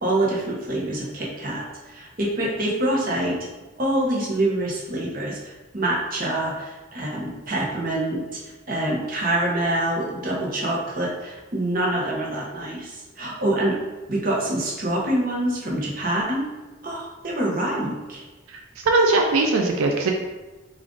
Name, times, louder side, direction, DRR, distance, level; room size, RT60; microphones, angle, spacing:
voice 1, 0.0-3.4 3.8-8.4 8.7-13.8 14.1-16.5 16.8-18.2, right 1 dB, 40° right, -3 dB, 0.8 m, -26 dB
voice 2, 18.9-20.1, right 3 dB, 85° right, 2 dB, 0.4 m, -20 dB
3.6 x 2.4 x 3.7 m, 1.1 s
head